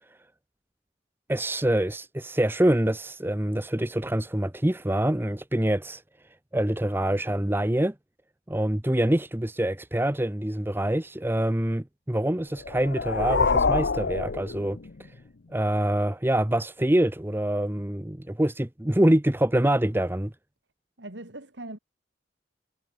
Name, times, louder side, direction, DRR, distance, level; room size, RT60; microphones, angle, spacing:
voice 1, 1.3-6.0 6.5-7.9 8.5-14.8 15.5-20.3, right 1 dB, 10° right, 0.8 m, -25 dB
sound 1, 12.6-15.2, left 4 dB, 65° left, 0.7 m, -26 dB
voice 2, 21.0-21.8, right 2 dB, 75° right, 3.6 m, -40 dB
head